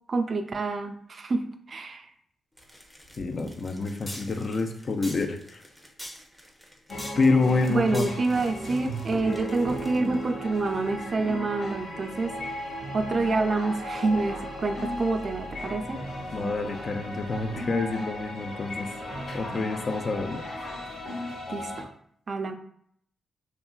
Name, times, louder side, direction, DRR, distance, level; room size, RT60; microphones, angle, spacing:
voice 1, 0.1-2.1 7.7-12.4 12.9-16.0 21.5-21.9 22.3-22.5, right 3 dB, 50° right, 7 dB, 0.3 m, -27 dB
sound 1, 2.6-10.2, equal, 5° left, 0.6 m, -44 dB
voice 2, 3.2-5.6 7.2-8.1 16.3-18.9 19.3-20.4, left 3 dB, 50° left, 6 dB, 0.4 m, -27 dB
sound 2, 6.9-21.8, equal, 70° left, 0.7 m, -36 dB
2.9 x 2.3 x 2.3 m, 0.65 s
supercardioid pair, 50°, 0 cm